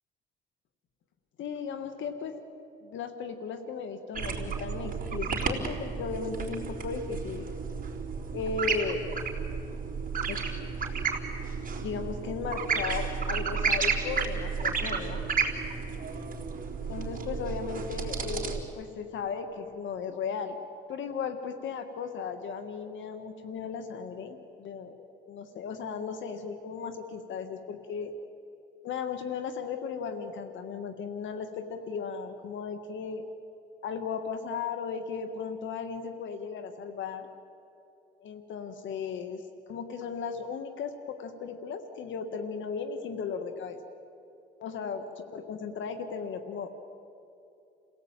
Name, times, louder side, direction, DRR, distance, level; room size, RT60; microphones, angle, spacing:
voice 1, 1.4-2.4 2.8-7.5 8.3-9.0 10.3-10.4 11.8-15.2 16.9-20.6 20.9-28.1 28.8-33.2 33.8-37.3 38.2-39.4 39.7-43.8 44.6-46.7, left 6 dB, 75° left, 8 dB, 1.6 m, -36 dB
sound 1, 4.1-18.6, right 5 dB, 40° right, 3.9 m, -32 dB
29.0 x 17.5 x 9.0 m, 2.7 s
cardioid pair, 90°, 20 cm